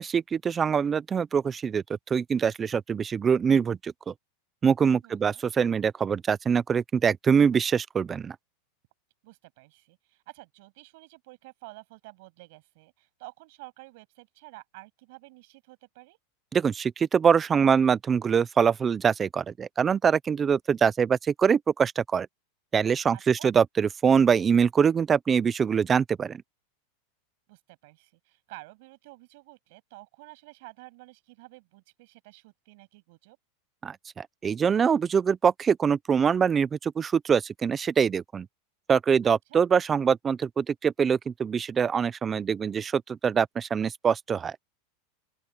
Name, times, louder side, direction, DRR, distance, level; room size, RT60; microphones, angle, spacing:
voice 1, 0.0-1.8 2.1-4.1 4.6-8.4 16.5-22.3 22.7-26.4 33.8-38.5 38.9-44.6, right 6 dB, 15° right, 0.4 m, -24 dB
voice 2, 5.0-5.4 9.2-16.2 23.1-23.5 27.5-33.4 39.2-39.6, right 23 dB, 55° right, 7.8 m, -50 dB
open air
supercardioid pair, 165°, 0 cm